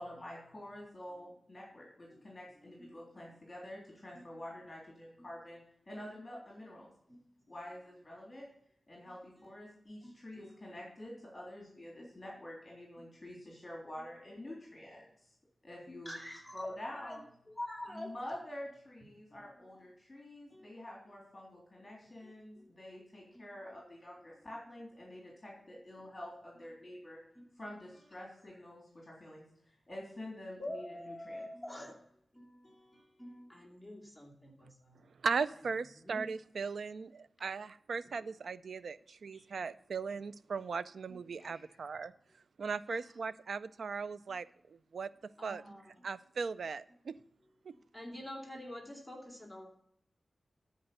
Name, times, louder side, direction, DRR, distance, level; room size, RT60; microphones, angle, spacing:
voice 1, 0.0-5.6 5.9-6.9 7.5-8.5 8.9-15.3 15.6-16.2 16.5-17.3 17.9-27.2 27.6-31.4 39.3-39.4 41.4-41.8, left 1 dB, 30° left, -3 dB, 3.5 m, -48 dB
voice 2, 2.6-3.3 4.1-4.3 7.1-7.3 9.4-9.5 10.0-10.6 12.0-12.2 16.0-17.2 17.5-18.1 19.3-19.4 20.5-20.7 22.2-22.7 23.3-23.5 26.0-26.1 27.3-27.6 30.6-32.0 32.3-35.0 35.9-36.3 38.1-38.3 41.1-41.5 43.0-43.1 45.4-46.1 47.7-49.7, left 1 dB, ahead, -2 dB, 2.7 m, -47 dB
voice 3, 35.2-42.1 42.6-44.5 44.9-45.1 45.4-45.6 46.0-47.1, right 5 dB, 80° right, 16 dB, 0.4 m, -38 dB
13.0 x 5.3 x 6.8 m, 0.71 s
wide cardioid pair, 80°, 0 cm